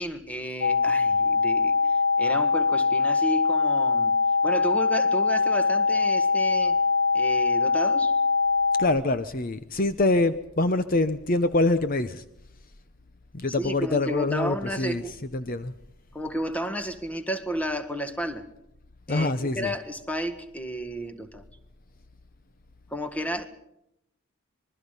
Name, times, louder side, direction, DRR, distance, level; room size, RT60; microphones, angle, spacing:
voice 1, 0.0-1.7 2.2-4.1 4.4-6.8 7.1-8.1 13.6-15.2 16.1-18.4 19.1-21.4 22.9-23.5, equal, 5° left, 1.7 m, -32 dB
sound 1, 0.6-8.8, left 4 dB, 90° left, 3.6 m, -22 dB
voice 2, 8.8-12.2 13.3-15.7 19.1-19.7, left 2 dB, 40° left, 0.7 m, -25 dB
26.0 x 22.0 x 5.5 m
head